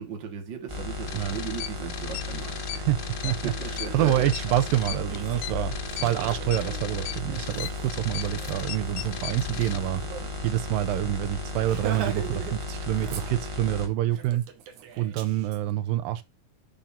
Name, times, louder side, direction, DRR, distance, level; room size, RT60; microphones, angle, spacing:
voice 1, 0.0-2.6 3.4-4.3 6.0-6.3, right 6 dB, 40° right, 2.0 m, -36 dB
sound 1, 0.7-13.9, left 2 dB, 15° right, 0.9 m, -35 dB
sound 2, 1.1-9.8, left 15 dB, 80° left, 2.2 m, -38 dB
Laughter, 3.2-3.3 3.7-10.3 10.6-10.7 11.0-11.2 11.6-12.6 12.9-13.7 14.1-15.6, right 8 dB, 65° right, 2.6 m, -41 dB
voice 2, 3.2-5.7 6.0-10.0 10.4-14.4 15.0-16.2, right 13 dB, 90° right, 2.6 m, -27 dB
11.5 x 6.7 x 2.8 m
omnidirectional pair, 4.0 m